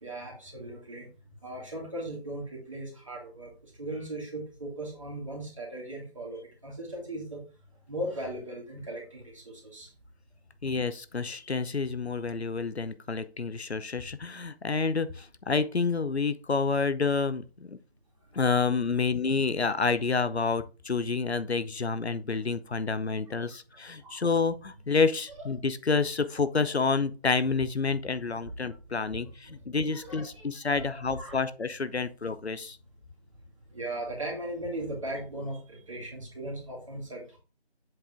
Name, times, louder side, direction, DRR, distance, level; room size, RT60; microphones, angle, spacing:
voice 1, 0.0-1.1 1.4-7.4 7.9-9.9 23.3-23.6 24.0-24.3 25.4-25.5 28.4-28.5 29.5-29.6 29.9-31.5 33.7-37.4, right 1 dB, 30° right, 2.4 m, -38 dB
voice 2, 10.6-17.8 18.3-32.8, left 4 dB, 80° left, 0.8 m, -29 dB
7.9 x 4.4 x 3.7 m
figure-of-eight pair, 170°, 32 cm